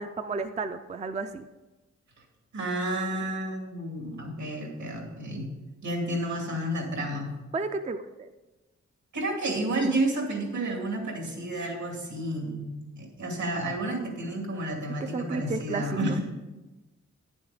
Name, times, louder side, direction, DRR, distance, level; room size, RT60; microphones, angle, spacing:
voice 1, 0.0-1.4 7.5-8.3 9.5-9.9 15.0-15.9, right 4 dB, 25° right, 8 dB, 0.4 m, -33 dB
voice 2, 2.5-5.5 5.8-7.3 9.1-16.2, right 1 dB, 75° right, 1 dB, 2.4 m, -31 dB
10.0 x 7.1 x 4.9 m, 1.1 s
wide cardioid pair, 140°, 29 cm